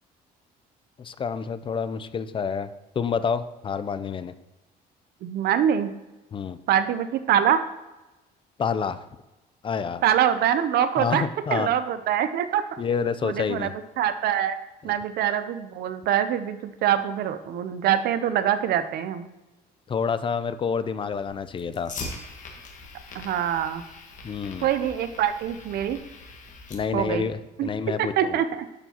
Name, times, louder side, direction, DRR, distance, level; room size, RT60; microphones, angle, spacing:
voice 1, 1.0-2.7 3.0-4.3 6.3-6.6 8.6-9.0 9.6-10.0 11.0-11.7 12.8-13.7 19.9-21.9 24.2-24.7 26.7-28.4, left 6 dB, 30° left, 13 dB, 0.4 m, -28 dB
voice 2, 5.2-5.9 6.7-7.6 10.0-11.3 11.5-12.8 13.2-14.6 14.8-19.3 23.1-23.8 24.6-26.0 26.9-27.3 27.6-27.7 28.0-28.7, right 10 dB, 70° right, 11 dB, 0.6 m, -24 dB
Fire, 21.1-27.1, left 3 dB, 50° left, 1.3 m, -42 dB
11.5 x 4.5 x 2.9 m, 1.1 s
cardioid pair, 110°, 17 cm